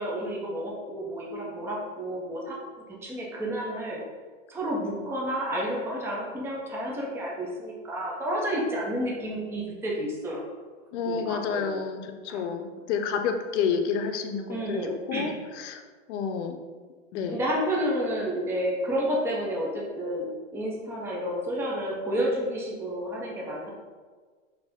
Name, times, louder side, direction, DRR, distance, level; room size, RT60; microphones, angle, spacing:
voice 1, 0.0-2.6 3.0-4.0 4.5-10.4 11.0-11.8 12.3-12.4 14.5-15.3 17.3-23.7, equal, 5° right, -3 dB, 0.5 m, -30 dB
voice 2, 10.9-14.8 15.1-16.6 17.1-17.4, left 6 dB, 60° left, 6 dB, 0.7 m, -29 dB
4.1 x 2.8 x 3.6 m, 1.5 s
hypercardioid pair, 130°, 38 cm